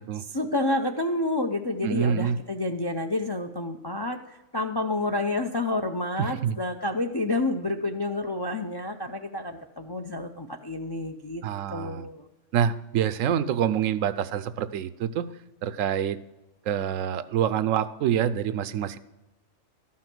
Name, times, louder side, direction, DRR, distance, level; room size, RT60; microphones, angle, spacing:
voice 1, 0.3-11.4 11.7-12.3, left 2 dB, 40° left, 4 dB, 0.3 m, -29 dB
voice 2, 1.8-2.4 6.2-6.6 11.4-12.1 12.5-15.3 15.6-16.2 16.7-19.0, right 9 dB, 80° right, 14 dB, 1.0 m, -26 dB
13.0 x 5.7 x 6.0 m, 1.0 s
omnidirectional pair, 1.4 m